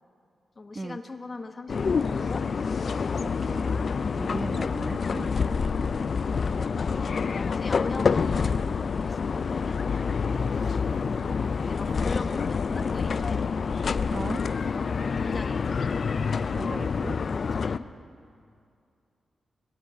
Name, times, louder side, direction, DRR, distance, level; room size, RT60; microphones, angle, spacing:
voice 1, 0.6-2.4 3.9-4.6 5.2-5.9 6.2-9.7 11.7-13.4 14.7-15.8 17.5-17.9, left 3 dB, 40° left, 7 dB, 1.1 m, -41 dB
sound 1, 1.7-17.8, left 5 dB, 60° left, 0.4 m, -27 dB
voice 2, 3.2-3.7 4.1-5.3 14.1-14.4 16.5-17.2, right 3 dB, 35° right, 14 dB, 0.4 m, -37 dB
Run / Bird vocalization bird call bird song, 10.0-17.5, right 2 dB, 90° right, 1.9 m, -58 dB
18.0 x 7.8 x 9.6 m, 2.4 s
cardioid pair, 70°, 0 cm